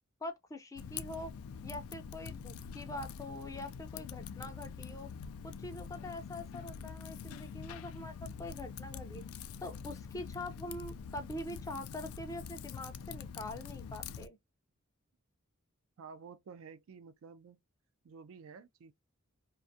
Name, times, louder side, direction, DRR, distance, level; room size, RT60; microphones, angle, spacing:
voice 1, 0.2-1.3 1.6-5.1 5.4-9.2 9.6-14.4, left 1 dB, 15° left, 0.4 m, -44 dB
Typing, 0.8-14.3, left 6 dB, 85° left, 0.3 m, -45 dB
voice 2, 16.0-17.6 18.0-18.9, right 5 dB, 75° right, 0.4 m, -51 dB
2.4 x 2.3 x 2.5 m
head